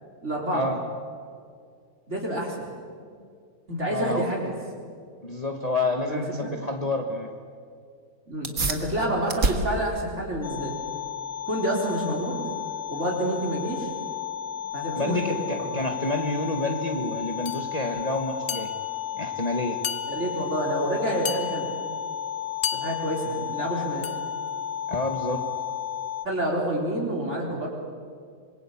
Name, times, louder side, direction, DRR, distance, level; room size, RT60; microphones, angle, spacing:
voice 1, 0.2-0.7 2.1-2.7 3.7-4.5 6.1-6.5 8.3-10.8 11.5-12.4 12.9-13.9 14.7-15.8 20.0-21.7 22.7-24.0 26.2-27.7, right 1 dB, 50° right, -2 dB, 4.2 m, -28 dB
voice 2, 3.9-4.3 5.2-7.3 12.6-12.8 15.0-18.7 19.1-19.8 24.9-25.4, left 2 dB, 25° left, 3 dB, 1.6 m, -28 dB
sound 1, 8.3-18.4, right 3 dB, 70° right, 2.3 m, -35 dB
sound 2, 10.4-26.3, left 11 dB, 75° left, 1.3 m, -33 dB
sound 3, 17.5-17.7 18.5-19.0 19.8-20.5 21.3-21.9 22.6-23.3 24.0-24.4, left 8 dB, 50° left, 0.9 m, -34 dB
26.0 x 22.0 x 8.7 m, 2.2 s
omnidirectional pair, 1.5 m